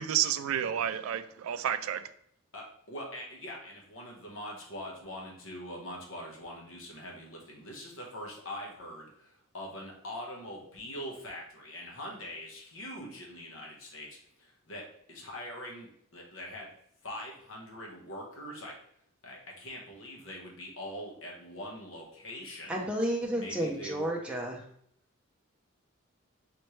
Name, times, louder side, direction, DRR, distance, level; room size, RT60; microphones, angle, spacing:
voice 1, 0.0-2.0, right 10 dB, 80° right, 12 dB, 0.3 m, -30 dB
voice 2, 2.5-16.7 17.0-18.8 19.2-22.9 23.3-24.1, equal, 65° left, -1 dB, 1.1 m, -43 dB
voice 3, 22.7-24.6, right 1 dB, 5° right, -2 dB, 0.6 m, -31 dB
4.2 x 3.1 x 3.1 m, 0.67 s
head